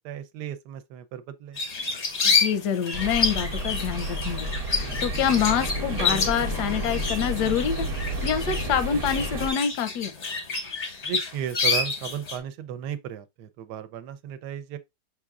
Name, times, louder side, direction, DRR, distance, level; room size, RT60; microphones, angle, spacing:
voice 1, 0.0-1.6 11.0-14.8, right 9 dB, 85° right, 1.2 m, -35 dB
sound 1, 1.6-12.4, left 4 dB, 45° left, 0.5 m, -29 dB
voice 2, 2.2-10.1, left 8 dB, 85° left, 1.2 m, -27 dB
sound 2, 2.9-9.5, right 1 dB, 55° right, 1.1 m, -31 dB
5.9 x 3.7 x 2.4 m
omnidirectional pair, 1.8 m